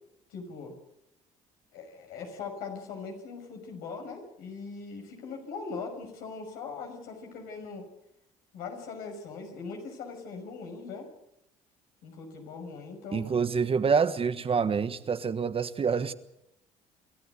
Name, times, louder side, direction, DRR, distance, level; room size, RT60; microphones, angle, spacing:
voice 1, 0.3-0.7 1.7-7.9 8.5-11.1 12.0-13.4, left 4 dB, 80° left, 6.2 m, -40 dB
voice 2, 13.1-16.1, right 6 dB, 40° right, 1.3 m, -27 dB
27.0 x 13.5 x 8.4 m
supercardioid pair, 70°, 15 cm